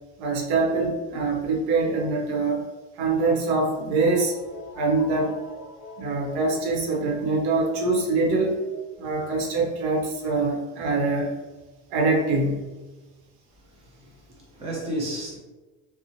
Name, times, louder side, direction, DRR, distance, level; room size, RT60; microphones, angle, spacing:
voice 1, 0.2-2.7 3.0-4.3 4.8-5.4 6.0-8.6 9.0-11.3 11.9-12.6, right 3 dB, 75° right, 0.8 m, -24 dB
sound 1, 3.5-9.0, left 1 dB, 15° left, 1.2 m, -44 dB
voice 2, 13.7-14.2 14.5-15.4, right 1 dB, 20° right, 0.5 m, -32 dB
2.9 x 2.0 x 2.6 m
cardioid pair, 170°, 32 cm